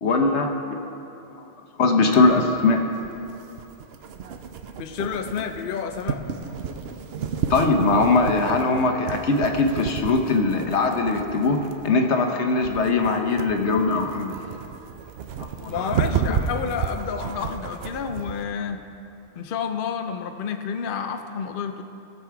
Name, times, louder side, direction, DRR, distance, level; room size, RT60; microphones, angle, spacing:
voice 1, 0.0-0.7 1.3-1.4 1.8-2.8 7.5-11.6 11.8-14.3 15.6-16.2, left 3 dB, 85° left, 4 dB, 1.3 m, -21 dB
sound 1, 2.1-18.4, right 6 dB, 70° right, 0.9 m, -32 dB
voice 2, 4.8-6.3 15.7-18.8 19.4-21.8, left 6 dB, 60° left, 6 dB, 0.7 m, -30 dB
18.5 x 6.8 x 4.7 m, 2.8 s
omnidirectional pair, 1.1 m